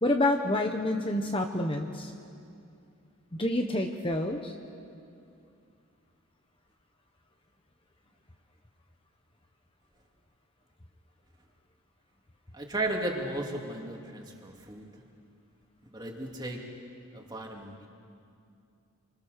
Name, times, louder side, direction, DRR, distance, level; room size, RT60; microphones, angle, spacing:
voice 1, 0.0-2.1 3.4-4.5, left 1 dB, 25° left, 4 dB, 1.1 m, -28 dB
voice 2, 12.5-15.0 15.8-16.6 17.1-17.9, right 1 dB, 20° right, 0 dB, 2.7 m, -35 dB
29.0 x 24.5 x 6.7 m, 2.5 s
head